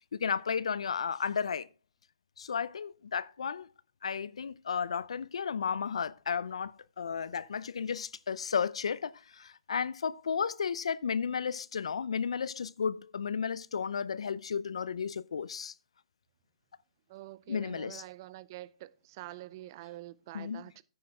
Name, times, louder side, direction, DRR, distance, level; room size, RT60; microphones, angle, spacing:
voice 1, 0.1-1.7 2.4-3.7 4.0-15.7 17.5-18.0 20.3-20.6, left 6 dB, 80° left, 0.5 m, -33 dB
voice 2, 17.1-20.8, right 16 dB, 40° right, 0.6 m, -46 dB
10.0 x 8.7 x 3.5 m
hypercardioid pair, 150°, 3 cm